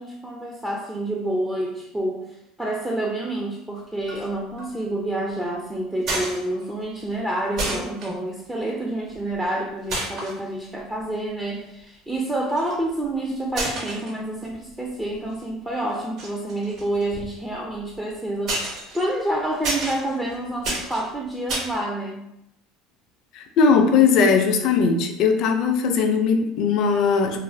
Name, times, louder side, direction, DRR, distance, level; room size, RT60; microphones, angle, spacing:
voice 1, 0.0-2.2 2.6-22.2, right 1 dB, 10° right, -2 dB, 0.4 m, -28 dB
sound 1, 4.1-4.3 4.6-4.9 6.0-6.8 7.1-7.2 7.6-8.1 9.1-9.5 9.9-10.4 11.0-11.1 12.3-12.9 13.5-14.7 15.1-15.4 16.0-17.9 18.5-21.8, right 1 dB, 60° right, 1.1 m, -30 dB
voice 2, 23.3-27.4, left 5 dB, 60° left, 5 dB, 0.4 m, -19 dB
2.4 x 2.1 x 3.2 m, 0.82 s
supercardioid pair, 110°, 0 cm